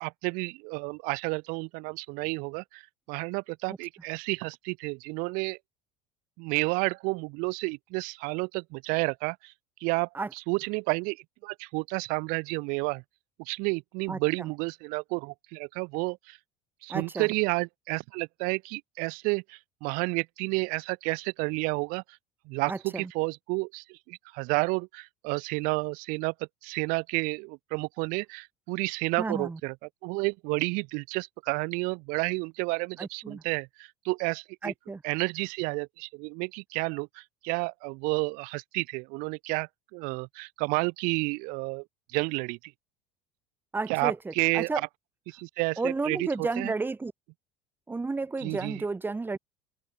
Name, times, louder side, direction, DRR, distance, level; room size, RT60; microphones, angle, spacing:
voice 1, 0.0-5.6 6.4-9.5 9.8-13.0 13.4-16.4 16.8-22.2 22.5-26.3 26.6-29.7 30.0-34.7 35.0-42.7 43.9-44.7 45.3-46.7 48.4-48.8, right 29 dB, 70° right, 0.6 m, -31 dB
voice 2, 16.9-17.3 22.7-23.1 29.2-29.6 33.0-33.4 34.6-35.0 43.7-44.8 45.8-47.1 47.9-49.4, right 3 dB, 15° right, 1.6 m, -32 dB
open air
supercardioid pair, 115°, 15 cm